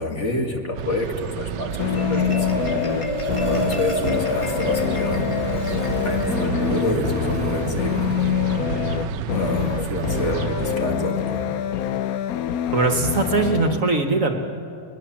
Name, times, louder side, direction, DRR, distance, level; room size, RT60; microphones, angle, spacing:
voice 1, 0.0-2.6 3.4-5.4 6.0-8.2 9.3-11.5, left 1 dB, 40° left, 3 dB, 2.3 m, -27 dB
sound 1, 0.7-10.8, right 7 dB, 85° right, 1.4 m, -30 dB
Marimba xylophone, 1.7-8.3, left 1 dB, 15° left, 2.1 m, -29 dB
sound 2, 1.8-13.8, left 10 dB, 65° left, 1.0 m, -26 dB
voice 2, 12.7-14.3, right 3 dB, 50° right, 6 dB, 1.6 m, -21 dB
22.0 x 20.5 x 7.4 m, 2.4 s
omnidirectional pair, 1.9 m